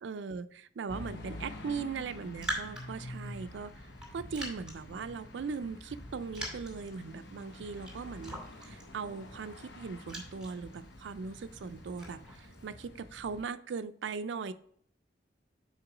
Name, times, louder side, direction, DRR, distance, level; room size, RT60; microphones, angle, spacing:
voice 1, 0.0-3.7 4.1-14.5, right 5 dB, 75° right, 14 dB, 0.4 m, -39 dB
sound 1, 0.9-13.4, left 1 dB, 70° left, 0.9 m, -48 dB
Raindrop, 2.0-12.7, right 1 dB, 5° right, 2.7 m, -45 dB
5.9 x 4.5 x 4.8 m, 0.65 s
head